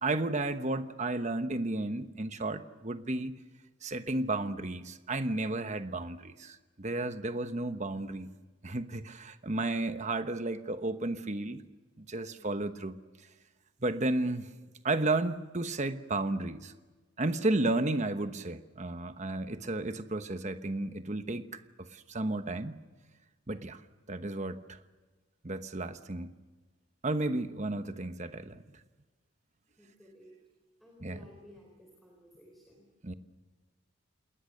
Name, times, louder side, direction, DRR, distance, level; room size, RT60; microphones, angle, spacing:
voice 1, 0.0-3.4 3.8-8.3 8.6-11.6 12.0-13.0 13.8-14.5 14.8-16.7 17.2-22.8 23.5-23.8 24.1-24.8 25.4-26.3 27.0-28.6 31.0-31.2 33.0-33.1, right 2 dB, 35° right, 9 dB, 1.1 m, -33 dB
voice 2, 12.4-12.7 29.8-30.4 30.8-32.8, equal, ahead, -1 dB, 4.4 m, -56 dB
28.5 x 20.5 x 6.6 m, 1.2 s
head